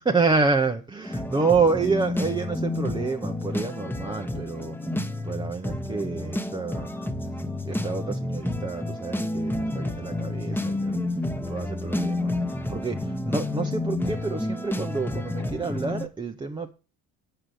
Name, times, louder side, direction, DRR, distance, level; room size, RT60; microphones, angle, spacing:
voice 1, 0.0-4.7 5.3-6.9 7.7-11.0 11.5-12.3 12.7-13.0 13.3-16.7, right 4 dB, 15° right, 0.6 m, -28 dB
sound 1, 1.0-16.1, left 1 dB, 5° left, 1.0 m, -30 dB
8.3 x 6.7 x 7.6 m
cardioid pair, 125°, 36 cm